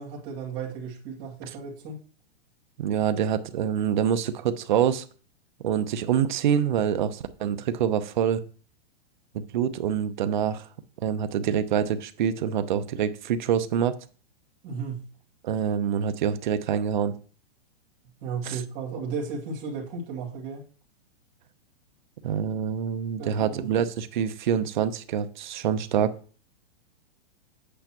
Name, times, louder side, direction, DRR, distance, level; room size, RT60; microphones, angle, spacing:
voice 1, 0.0-2.0 14.6-15.1 18.2-20.6 23.2-23.9, right 5 dB, 30° right, 2.3 m, -34 dB
voice 2, 2.8-5.0 5.6-8.4 9.3-10.7 11.0-14.0 15.4-17.1 18.4-18.6 22.2-26.1, right 8 dB, 50° right, 0.8 m, -26 dB
8.4 x 7.7 x 3.0 m
supercardioid pair, 175°, 31 cm